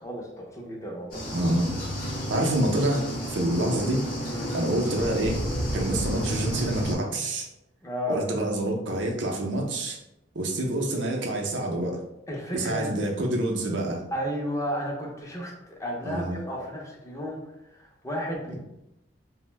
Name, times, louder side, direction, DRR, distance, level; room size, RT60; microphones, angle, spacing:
voice 1, 0.0-1.2 4.3-4.5 7.8-8.2 12.3-12.9 14.1-18.6, equal, 15° left, -1 dB, 0.5 m, -33 dB
sound 1, 1.1-7.0, equal, 50° left, 0.7 m, -31 dB
voice 2, 1.3-1.7 2.3-4.1 4.5-5.4 5.7-7.5 8.1-10.0 10.3-12.0 12.5-14.0 16.0-16.3, right 1 dB, 75° right, 0 dB, 0.5 m, -27 dB
2.6 x 2.1 x 3.1 m, 0.87 s
head